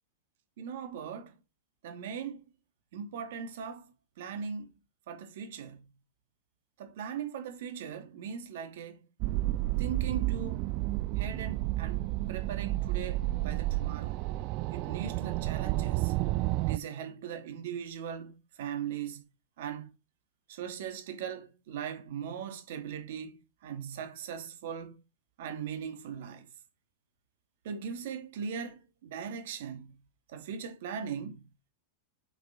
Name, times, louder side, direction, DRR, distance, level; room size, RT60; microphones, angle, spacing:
voice 1, 0.6-1.3 1.8-2.4 2.9-4.7 5.1-5.9 6.8-9.0 9.8-10.7 11.2-14.2 14.7-16.1 16.6-19.2 19.6-19.9 20.5-25.0 25.4-26.5 27.6-30.0 30.3-31.4, right 7 dB, 70° right, 2.5 m, -39 dB
sound 1, 9.2-16.8, right 17 dB, 40° right, 0.4 m, -31 dB
8.3 x 4.8 x 4.2 m
supercardioid pair, 150°, 0 cm